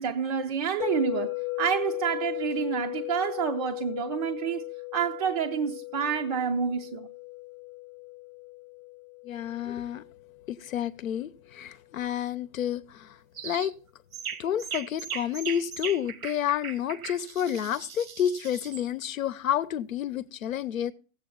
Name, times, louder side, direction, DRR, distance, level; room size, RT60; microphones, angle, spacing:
voice 1, 0.0-4.6 4.9-7.1, right 7 dB, 30° right, 0.5 m, -28 dB
sound 1, 0.8-10.9, left 23 dB, 30° left, 0.9 m, -37 dB
voice 2, 9.2-10.0 10.5-13.2 13.4-13.7 14.4-20.9, left 10 dB, 70° left, 0.9 m, -30 dB
sound 2, 13.4-13.7 14.1-18.9, right 7 dB, 80° right, 1.2 m, -38 dB
16.0 x 7.7 x 3.9 m
hypercardioid pair, 145°, 42 cm